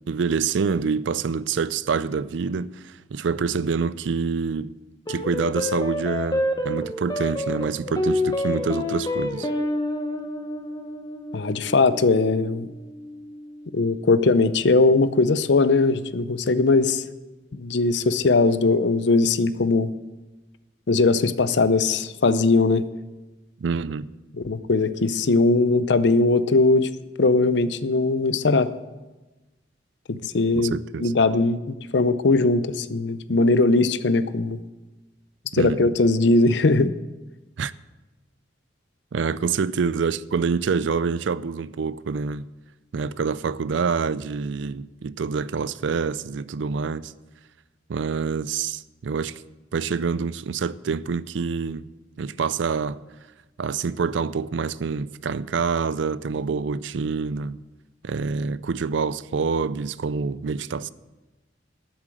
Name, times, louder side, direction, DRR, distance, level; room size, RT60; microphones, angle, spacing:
voice 1, 0.1-4.7 5.1-9.5 23.6-24.1 30.5-31.1 35.5-35.9 37.6-37.7 39.1-42.5 42.9-47.1 47.9-49.4 49.7-51.9 52.2-53.0 53.6-57.6 58.0-60.9, right 5 dB, 70° right, 0.4 m, -26 dB
sound 1, 5.1-13.7, left 1 dB, 20° left, 0.9 m, -29 dB
voice 2, 11.3-12.7 13.7-17.0 17.5-19.9 20.9-22.8 24.4-26.9 27.2-28.7 30.1-30.7 31.0-31.6 31.9-34.6 35.5-36.9, left 3 dB, 65° left, 0.6 m, -20 dB
12.5 x 7.4 x 7.8 m
head